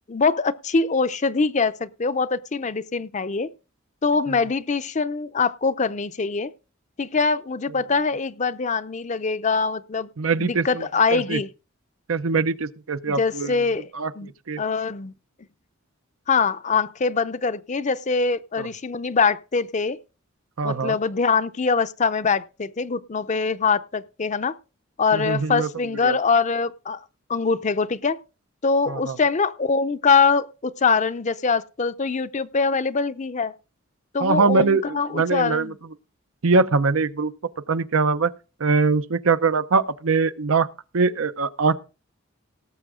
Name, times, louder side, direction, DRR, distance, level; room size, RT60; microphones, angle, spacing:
voice 1, 0.1-3.5 4.0-6.5 7.0-10.1 10.4-11.5 13.1-13.9 14.2-14.3 14.6-15.1 16.3-20.0 20.6-24.5 25.0-27.0 27.3-28.2 28.6-33.5 34.1-35.8, left 4 dB, 35° left, 0.5 m, -23 dB
voice 2, 10.2-11.4 12.1-13.6 13.9-14.6 18.6-18.7 20.6-21.0 25.1-25.7 26.0-26.2 28.9-29.2 34.2-35.7 36.4-37.3 37.7-38.3 38.6-40.7 40.9-41.8, right 4 dB, 85° right, 0.7 m, -22 dB
18.0 x 6.9 x 3.7 m
head